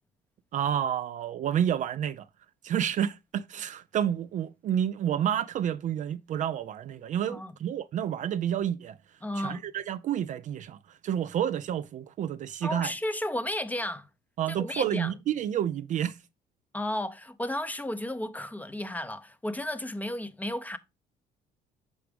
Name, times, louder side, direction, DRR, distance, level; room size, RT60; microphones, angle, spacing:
voice 1, 0.5-2.3 2.6-9.0 9.4-12.9 14.4-16.2, right 10 dB, 50° right, 0.4 m, -29 dB
voice 2, 9.2-9.6 12.6-14.1 14.5-15.1 16.7-20.8, left 1 dB, 10° left, 0.5 m, -33 dB
6.1 x 4.6 x 3.3 m
cardioid pair, 110°, 17 cm